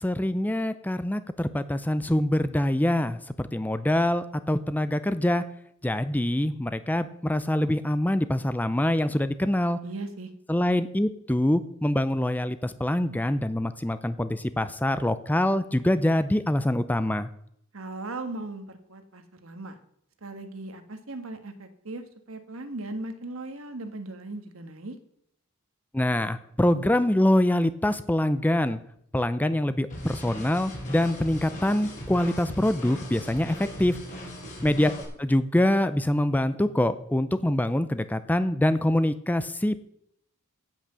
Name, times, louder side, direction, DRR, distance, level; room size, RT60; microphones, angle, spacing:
voice 1, 0.0-5.4 5.8-9.8 10.5-17.3 25.9-28.8 29.1-34.0 34.6-34.9 35.2-39.8, left 1 dB, 10° left, 12 dB, 0.5 m, -25 dB
voice 2, 9.8-10.3 17.7-19.8 20.2-24.9, right 2 dB, 70° right, 9 dB, 1.4 m, -38 dB
sound 1, 29.9-35.0, left 1 dB, 35° left, 4.5 m, -38 dB
16.0 x 6.1 x 6.8 m, 0.73 s
head